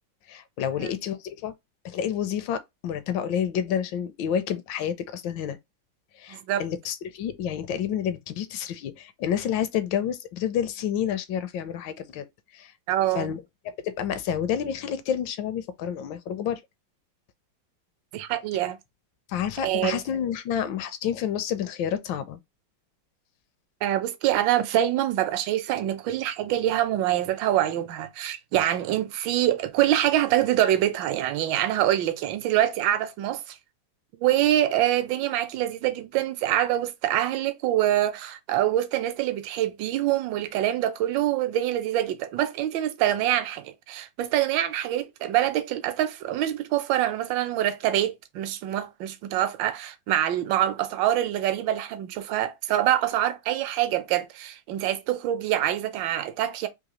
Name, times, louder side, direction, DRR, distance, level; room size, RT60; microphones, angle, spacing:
voice 1, 0.3-1.5 1.8-5.6 6.2-12.3 12.5-12.7 13.1-16.6 19.3-22.4, left 9 dB, 75° left, 1.2 m, -29 dB
voice 2, 6.3-6.7 12.9-13.3 18.1-18.8 19.6-20.0 23.8-33.5 34.2-56.7, right 12 dB, 75° right, 1.3 m, -25 dB
3.8 x 2.7 x 2.9 m
omnidirectional pair, 2.1 m